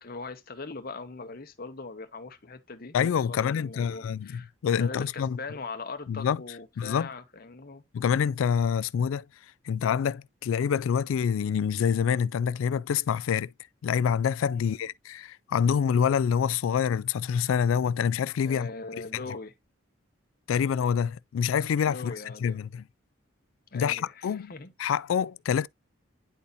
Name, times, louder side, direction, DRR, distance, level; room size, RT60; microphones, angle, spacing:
voice 1, 0.0-3.0 3.3-7.8 14.5-14.8 18.4-19.5 21.8-22.6 23.7-24.7, left 3 dB, 45° left, 0.9 m, -41 dB
voice 2, 2.9-5.4 6.1-6.4 6.8-7.1 7.9-9.2 9.7-13.5 13.8-18.7 20.5-22.1 22.4-22.8 23.7-24.5 24.8-25.7, left 7 dB, 80° left, 0.3 m, -26 dB
10.0 x 4.1 x 2.5 m
head